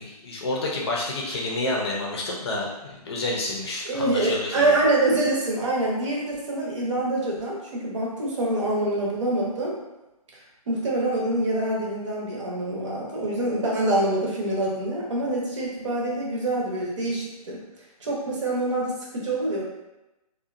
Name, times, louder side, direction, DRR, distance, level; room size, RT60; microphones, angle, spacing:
voice 1, 0.0-4.7, left 2 dB, 40° left, -2 dB, 0.6 m, -29 dB
voice 2, 3.9-9.7 10.7-17.6 18.0-19.6, right 2 dB, 50° right, -4 dB, 0.8 m, -25 dB
2.7 x 2.2 x 2.4 m, 0.98 s
figure-of-eight pair, 145°, 20 cm